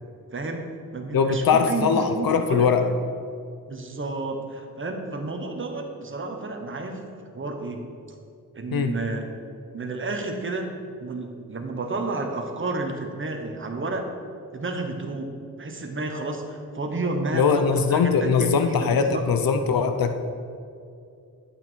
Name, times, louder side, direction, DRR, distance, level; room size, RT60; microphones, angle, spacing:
voice 1, 0.3-0.7 0.9-2.7 3.7-7.0 7.3-7.9 8.5-9.3 9.7-10.7 11.0-14.1 14.5-15.3 15.6-19.2, right 3 dB, 35° right, 3 dB, 1.2 m, -31 dB
voice 2, 1.1-2.9 8.7-8.9 17.3-20.1, left 5 dB, 90° left, 7 dB, 0.8 m, -21 dB
12.0 x 8.4 x 4.6 m, 2.5 s
wide cardioid pair, 180°, 34 cm